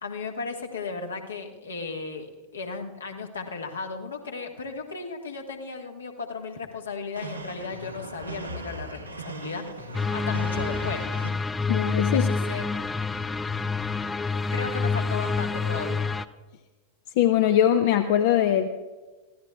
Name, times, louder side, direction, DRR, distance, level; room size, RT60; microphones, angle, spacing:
voice 1, 0.0-11.1 12.1-12.7 14.5-16.1, left 4 dB, 70° left, 2 dB, 1.7 m, -35 dB
sound 1, 7.2-11.3, right 2 dB, 85° right, 1.6 m, -38 dB
sound 2, 9.9-16.3, left 4 dB, 15° left, 0.5 m, -27 dB
voice 2, 11.7-12.3 17.2-18.7, left 10 dB, 50° left, 8 dB, 0.7 m, -21 dB
24.5 x 16.0 x 2.4 m, 1.3 s
figure-of-eight pair, 90°, 0 cm